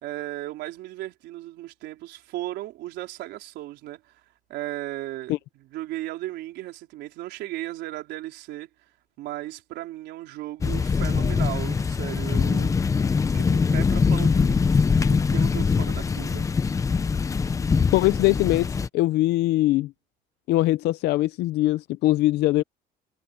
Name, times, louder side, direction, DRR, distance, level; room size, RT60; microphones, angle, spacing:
voice 1, 0.0-4.2 4.5-8.7 9.2-12.7 13.3-14.6 15.1-16.5, right 16 dB, 70° right, 4.2 m, -36 dB
sound 1, 10.6-18.9, left 5 dB, 15° left, 0.7 m, -23 dB
voice 2, 17.9-18.7 18.9-19.9 20.5-22.6, left 17 dB, 65° left, 0.6 m, -21 dB
cardioid pair, 165°, 18 cm